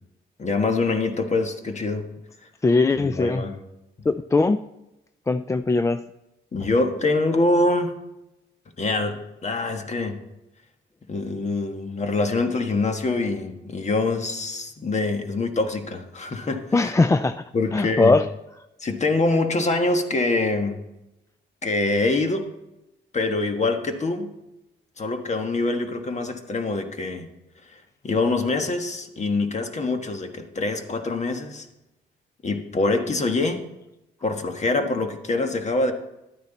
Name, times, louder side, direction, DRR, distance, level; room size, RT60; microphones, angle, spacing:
voice 1, 0.4-2.0 3.0-3.6 6.5-7.9 8.8-10.2 11.1-16.9 17.5-18.1 18.8-20.8 21.6-22.5 23.1-24.3 25.0-27.3 27.6-31.7 32.4-33.6 34.2-35.9, left 2 dB, 35° left, 6 dB, 1.5 m, -25 dB
voice 2, 2.6-3.4 4.1-4.6 5.3-6.0 16.7-17.4 17.7-18.3, left 3 dB, 15° left, 12 dB, 0.3 m, -20 dB
12.0 x 9.5 x 4.0 m, 0.91 s
cardioid pair, 90°, 20 cm